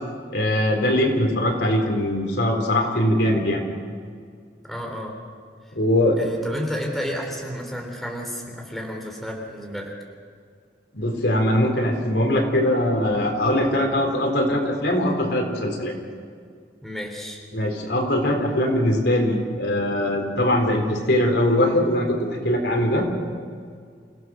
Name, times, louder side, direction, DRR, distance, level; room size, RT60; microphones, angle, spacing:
voice 1, 0.3-3.6 5.8-6.3 10.9-15.9 17.5-23.1, left 1 dB, 75° left, 2 dB, 3.9 m, -21 dB
voice 2, 4.7-5.1 6.2-9.9 16.8-17.4, equal, ahead, 0 dB, 3.7 m, -31 dB
29.0 x 17.0 x 6.3 m, 2.1 s
head